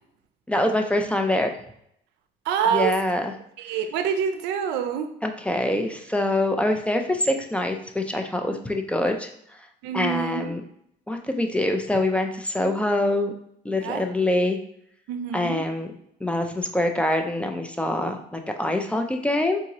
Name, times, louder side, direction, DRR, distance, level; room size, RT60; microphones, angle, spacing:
voice 1, 0.5-1.5 2.7-3.3 5.2-9.3 9.9-10.6 11.1-13.3 13.6-14.6 15.3-15.9 16.2-19.6, left 1 dB, 5° left, 4 dB, 0.3 m, -24 dB
voice 2, 2.5-3.0 3.6-5.1 9.8-10.5 13.8-14.0 15.1-15.6, right 8 dB, 90° right, 7 dB, 0.5 m, -26 dB
3.6 x 2.7 x 2.9 m, 0.72 s
cardioid pair, 110°, 17 cm